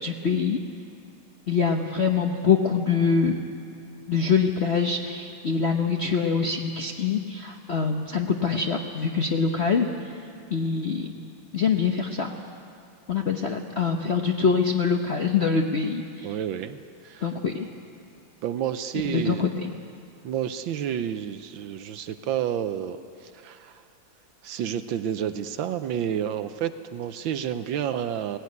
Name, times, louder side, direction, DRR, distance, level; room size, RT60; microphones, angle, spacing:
voice 1, 0.0-0.6 1.5-3.3 4.1-10.2 10.5-11.1 11.5-12.3 13.1-16.4 17.2-17.7 19.0-19.7, left 5 dB, 55° left, 3 dB, 0.7 m, -24 dB
voice 2, 16.2-16.8 17.0-17.3 18.4-19.5 20.2-23.8 24.4-28.4, right 9 dB, 70° right, 10 dB, 1.3 m, -30 dB
17.0 x 16.0 x 9.5 m, 2.4 s
omnidirectional pair, 2.4 m